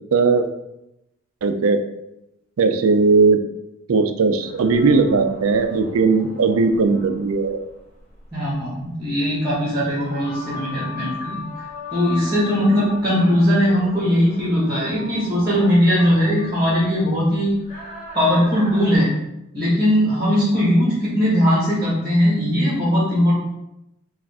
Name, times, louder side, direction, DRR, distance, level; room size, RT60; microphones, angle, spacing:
voice 1, 0.1-0.5 1.4-1.8 2.6-3.4 3.9-7.6, right 4 dB, 70° right, 8 dB, 0.4 m, -17 dB
sound 1, 4.4-19.0, left 2 dB, 30° left, 1.2 m, -38 dB
voice 2, 8.3-11.4 11.9-17.5 18.1-19.1 19.5-23.3, equal, 15° right, -7 dB, 1.2 m, -19 dB
4.8 x 2.5 x 3.5 m, 0.87 s
head